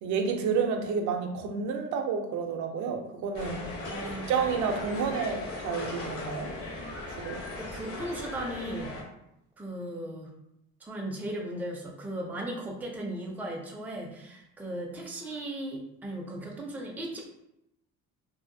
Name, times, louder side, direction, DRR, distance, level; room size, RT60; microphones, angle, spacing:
voice 1, 0.0-3.6 4.0-6.5 7.1-7.4, right 6 dB, 70° right, 5 dB, 0.5 m, -30 dB
sound 1, 3.3-9.0, left 2 dB, 45° left, 0.8 m, -38 dB
voice 2, 3.9-4.4 7.6-8.9 9.6-10.3 10.8-17.2, right 1 dB, 5° right, -1 dB, 0.4 m, -37 dB
2.7 x 2.4 x 2.5 m, 0.82 s
cardioid pair, 130°, 31 cm